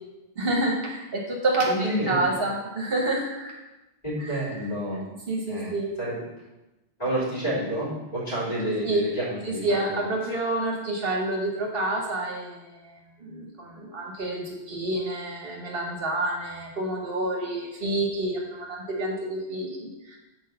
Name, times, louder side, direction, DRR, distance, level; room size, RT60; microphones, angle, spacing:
voice 1, 0.4-3.6 4.2-4.4 5.3-5.9 8.8-9.1 9.4-20.2, right 2 dB, 65° right, -1 dB, 1.3 m, -28 dB
voice 2, 1.7-2.2 4.0-5.0 5.5-5.7 6.0-6.2 7.0-10.0, right 1 dB, 40° left, -8 dB, 3.5 m, -29 dB
6.3 x 4.7 x 6.7 m, 1.0 s
omnidirectional pair, 1.1 m